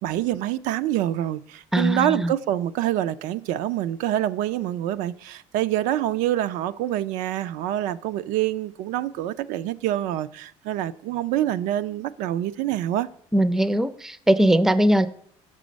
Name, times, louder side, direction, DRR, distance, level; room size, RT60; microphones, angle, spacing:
voice 1, 0.0-13.1, right 12 dB, 75° right, 0.4 m, -26 dB
voice 2, 1.7-2.3 13.3-15.1, right 1 dB, 5° right, 0.4 m, -20 dB
7.4 x 6.1 x 5.1 m
cardioid pair, 120°, 13 cm